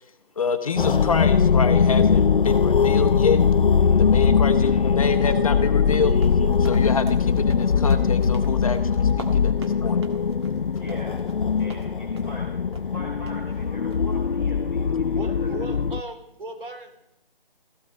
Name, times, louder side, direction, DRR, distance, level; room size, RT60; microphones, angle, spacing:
voice 1, 0.4-3.4 4.0-10.0, left 5 dB, 35° left, 7 dB, 1.2 m, -27 dB
sound 1, 0.8-16.0, left 6 dB, 65° left, 0.6 m, -21 dB
voice 2, 3.8-4.1 10.8-11.2 11.6-12.5 12.9-15.5, left 1 dB, ahead, -8 dB, 0.6 m, -41 dB
sound 2, 5.9-11.9 12.2-12.4 12.7-12.9 13.3-13.4 13.9-14.2, right 3 dB, 25° right, 1.6 m, -45 dB
voice 3, 15.2-17.0, right 2 dB, 60° right, 5 dB, 3.5 m, -36 dB
16.0 x 14.5 x 5.2 m, 0.80 s
figure-of-eight pair, 150°, 29 cm